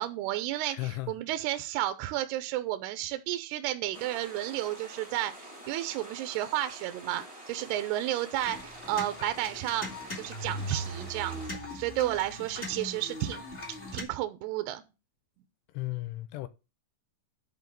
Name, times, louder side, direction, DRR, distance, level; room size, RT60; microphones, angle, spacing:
voice 1, 0.0-0.8 1.1-9.9 10.2-11.4 11.7-13.5 13.9-14.8, right 14 dB, 80° right, 2.5 m, -32 dB
voice 2, 0.7-1.1 15.7-16.5, left 19 dB, 80° left, 2.5 m, -35 dB
sound 1, 3.9-11.5, right 1 dB, 20° right, 0.9 m, -47 dB
sound 2, 8.4-14.0, left 1 dB, 30° left, 1.0 m, -40 dB
11.0 x 4.0 x 7.5 m
omnidirectional pair, 5.5 m